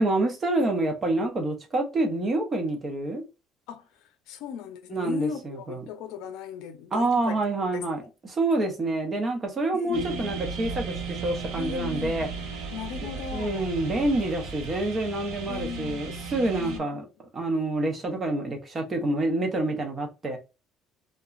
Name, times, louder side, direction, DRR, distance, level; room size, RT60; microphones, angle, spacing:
voice 1, 0.0-3.2 4.9-5.8 6.9-12.3 13.3-17.0 17.3-20.4, right 2 dB, 20° right, 0.6 m, -27 dB
voice 2, 3.7-7.4 7.7-7.8 9.7-10.4 11.6-12.3 12.7-13.7 15.5-16.2 16.6-17.0, left 7 dB, 80° left, 0.5 m, -38 dB
sound 1, 9.9-16.8, right 5 dB, 85° right, 0.9 m, -35 dB
2.8 x 2.2 x 2.4 m
cardioid pair, 170°, 0 cm